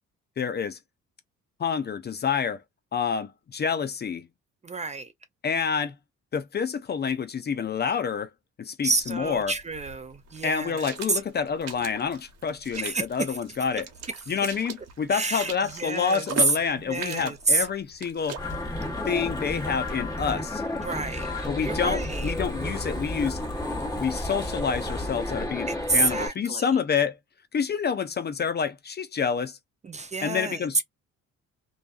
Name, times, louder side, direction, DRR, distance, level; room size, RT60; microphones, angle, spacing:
voice 1, 0.4-0.8 1.6-2.6 2.9-4.3 5.4-5.9 6.3-8.3 8.6-9.5 10.4-13.8 14.3-18.4 19.0-20.6 21.5-23.4 24.0-27.2 27.5-29.6 30.2-30.8, left 6 dB, 35° left, 0.5 m, -28 dB
voice 2, 4.6-5.1 8.8-11.2 12.8-13.4 15.1-17.7 20.7-21.3 21.6-22.3 25.7-26.8 29.8-30.7, right 3 dB, 25° right, 0.4 m, -29 dB
sound 1, 9.0-20.0, right 6 dB, 60° right, 0.9 m, -42 dB
sound 2, 18.4-26.3, left 1 dB, 10° left, 1.2 m, -31 dB
2.5 x 2.3 x 2.3 m
cardioid pair, 90°, 30 cm